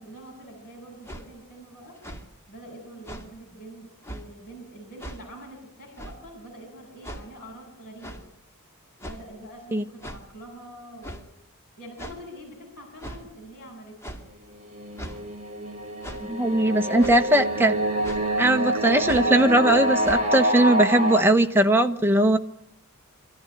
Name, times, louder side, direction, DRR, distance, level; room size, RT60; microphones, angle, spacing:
voice 1, 0.0-2.0 2.5-8.2 9.0-11.3 11.8-14.0 16.3-17.3, right 1 dB, 45° left, -4 dB, 7.5 m, -45 dB
sound 1, 1.0-1.3 2.0-2.3 3.0-3.3 4.0-4.2 5.0-5.2 6.0-6.2 7.0-7.2 8.0-8.2 9.0-9.3 10.0-10.2 11.0-11.2 12.0-12.2 13.0-13.2 14.0-14.2 15.0-15.2 16.0-16.3 17.0-17.2 18.0-18.2 19.0-19.3 20.0-20.2, right 1 dB, 10° left, 2.3 m, -38 dB
sound 2, 14.5-21.2, right 1 dB, 35° right, 2.5 m, -26 dB
voice 2, 16.2-17.7 18.4-22.4, right 1 dB, 10° right, 5 dB, 1.1 m, -20 dB
25.0 x 14.0 x 10.0 m, 0.86 s
head